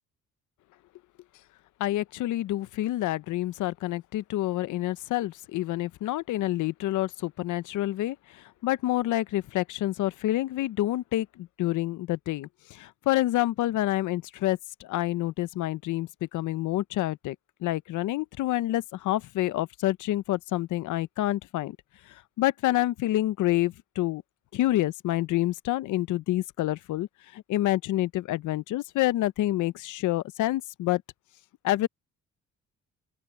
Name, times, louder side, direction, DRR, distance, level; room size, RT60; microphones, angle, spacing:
voice 1, 1.8-17.4 17.6-21.8 22.1-24.2 24.5-31.0 31.6-31.9, left 15 dB, 80° left, 0.8 m, -28 dB
open air
cardioid pair, 90°, 30 cm